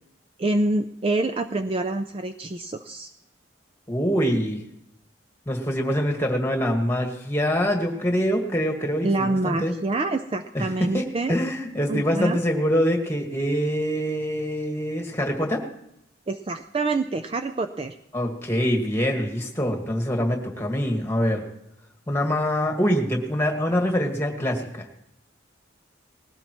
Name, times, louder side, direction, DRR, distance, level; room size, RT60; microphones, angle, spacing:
voice 1, 0.4-3.1 9.0-11.4 11.9-12.4 16.3-17.9, right 2 dB, 30° right, 8 dB, 0.4 m, -26 dB
voice 2, 3.9-4.6 5.5-9.7 10.5-15.6 18.1-21.4 22.1-24.9, equal, 10° left, 2 dB, 1.7 m, -24 dB
20.0 x 16.5 x 3.0 m, 0.80 s
head